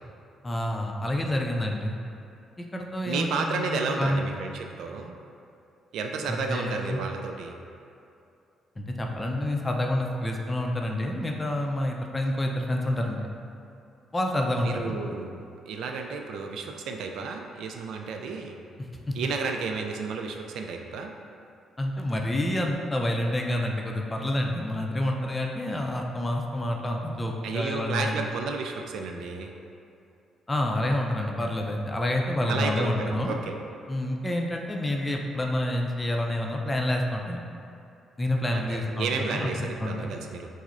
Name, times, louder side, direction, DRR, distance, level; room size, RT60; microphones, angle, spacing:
voice 1, 0.4-2.0 2.6-4.2 6.3-7.0 8.8-13.3 14.1-15.0 19.1-19.2 21.8-28.3 30.5-33.4 33.9-37.4 38.2-40.1, left 1 dB, 20° left, 1 dB, 0.4 m, -28 dB
voice 2, 3.1-5.1 5.9-7.6 14.6-18.5 19.1-21.1 27.4-29.5 32.5-33.5 38.5-40.5, right 4 dB, 80° right, 3 dB, 0.3 m, -32 dB
6.0 x 2.0 x 2.6 m, 2.6 s
cardioid pair, 90°, 0 cm